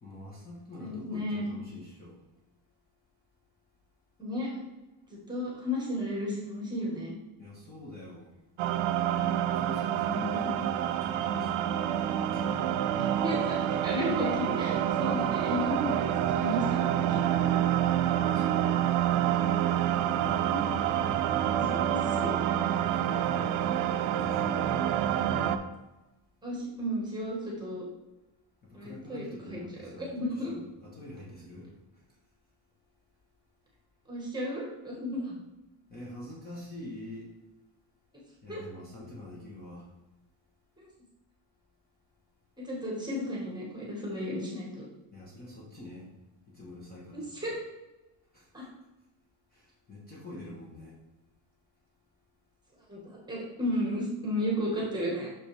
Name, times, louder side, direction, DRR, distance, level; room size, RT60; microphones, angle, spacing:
voice 1, 0.0-2.2 7.4-8.3 9.5-12.8 17.0-17.5 17.9-19.2 22.8-24.8 28.6-30.1 30.5-32.2 35.9-37.3 38.4-39.9 45.1-46.1 46.5-47.4 48.3-48.7 49.5-51.0, left 1 dB, 20° left, -5 dB, 1.2 m, -46 dB
voice 2, 0.8-1.5 4.2-4.5 5.1-7.2 10.0-10.4 13.2-17.5 20.1-20.6 20.9-21.0 21.5-22.3 26.4-27.8 28.7-30.5 34.1-35.4 38.5-38.6 40.8-40.9 42.6-44.8 47.1-47.6 48.5-48.7 52.9-55.3, left 1 dB, 10° right, -3 dB, 1.4 m, -34 dB
sound 1, 8.6-25.6, right 10 dB, 80° right, 0.6 m, -27 dB
6.2 x 6.0 x 3.3 m, 1.0 s
cardioid pair, 180°, 47 cm